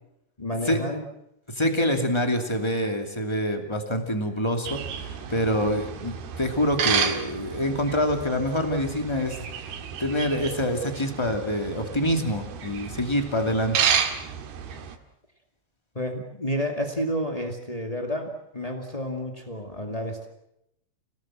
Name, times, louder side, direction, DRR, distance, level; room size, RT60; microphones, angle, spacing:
voice 1, 0.4-1.0 15.9-20.3, equal, 80° left, 3 dB, 0.3 m, -30 dB
voice 2, 1.5-9.5 10.0-13.8, equal, 10° left, 4 dB, 1.4 m, -26 dB
sound 1, 4.7-15.0, right 8 dB, 65° right, 3.4 m, -31 dB
29.5 x 18.0 x 7.7 m, 0.81 s
omnidirectional pair, 5.2 m